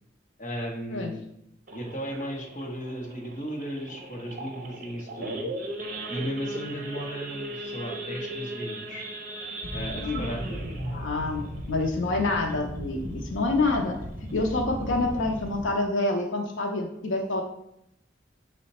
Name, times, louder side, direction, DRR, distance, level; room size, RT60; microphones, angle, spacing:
voice 1, 0.4-1.2 1.7-5.5 6.1-9.1 9.7-10.7, equal, 45° left, 0 dB, 0.9 m, -35 dB
Idling / Accelerating revving vroom / Sawing, 1.7-12.8 13.2-13.4 13.6-13.7 14.2-14.5 14.9-15.0 15.2-15.6, right 1 dB, 45° right, 0.6 m, -38 dB
sound 1, 9.6-15.6, equal, 10° left, 1.4 m, -36 dB
voice 2, 10.9-14.0 14.3-17.4, left 2 dB, 85° left, 2 dB, 0.5 m, -27 dB
5.6 x 2.1 x 4.0 m, 0.78 s
head